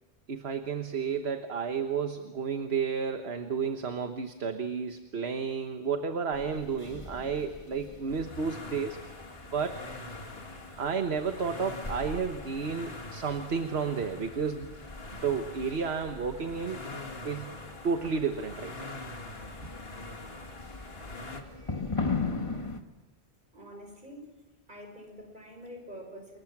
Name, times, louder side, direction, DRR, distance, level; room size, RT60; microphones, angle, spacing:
voice 1, 0.3-9.0 9.5-9.8 10.8-14.7 15.2-16.8 17.2-17.6 17.8-18.9 19.6-19.7, right 5 dB, 70° right, 6 dB, 1.4 m, -32 dB
sound 1, 6.3-22.8, left 4 dB, 30° left, 1.5 m, -40 dB
sound 2, 8.1-21.4, left 2 dB, 65° left, 2.5 m, -44 dB
voice 2, 23.5-24.4 24.7-26.4, equal, 45° right, 3 dB, 5.9 m, -46 dB
28.5 x 22.5 x 6.0 m, 1.2 s
omnidirectional pair, 1.1 m